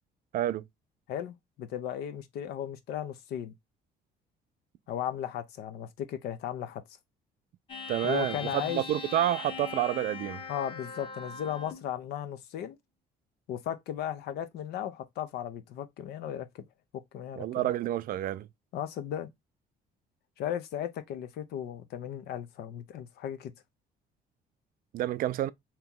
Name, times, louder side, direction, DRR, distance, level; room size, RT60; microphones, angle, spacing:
voice 1, 1.1-3.5 4.9-6.8 8.0-8.8 10.5-12.8 13.5-16.6 17.1-17.4 18.7-19.3 20.4-23.5, left 10 dB, 75° left, 0.6 m, -36 dB
sound 1, 7.7-11.9, left 5 dB, 30° left, 0.9 m, -40 dB
voice 2, 7.9-10.4 17.4-18.5 24.9-25.5, right 12 dB, 55° right, 0.4 m, -29 dB
2.9 x 2.9 x 3.6 m
cardioid pair, 110°, 17 cm